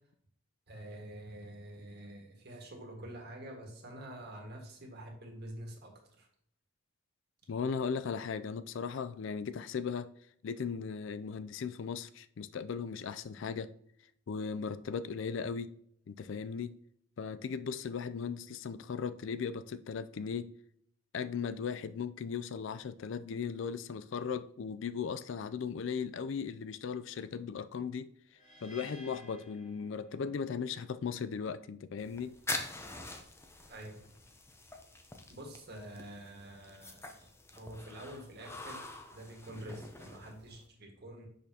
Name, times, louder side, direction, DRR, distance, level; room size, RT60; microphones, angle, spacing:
voice 1, 0.7-6.3 33.7-34.1 35.3-41.3, right 1 dB, 55° right, 1.7 m, -47 dB
voice 2, 7.5-10.1 10.4-13.7 14.3-15.7 16.1-16.8 17.2-20.5 21.1-28.1 28.6-32.4, left 6 dB, 65° left, 0.4 m, -37 dB
sound 1, 28.3-30.5, equal, 30° left, 1.9 m, -55 dB
sound 2, 32.0-40.7, left 2 dB, 15° left, 0.6 m, -45 dB
6.2 x 5.6 x 2.8 m
head